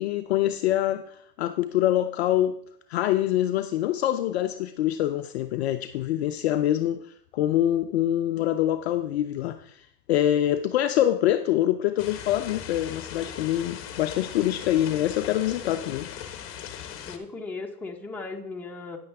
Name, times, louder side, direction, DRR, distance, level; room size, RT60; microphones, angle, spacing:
voice 1, 0.0-2.6 2.9-16.1, left 12 dB, 45° left, 0.5 m, -25 dB
sound 1, 12.0-17.2, left 9 dB, 25° left, 1.1 m, -39 dB
voice 2, 17.1-19.0, left 3 dB, 5° left, 0.9 m, -37 dB
9.5 x 8.5 x 3.5 m
hypercardioid pair, 125°, 49 cm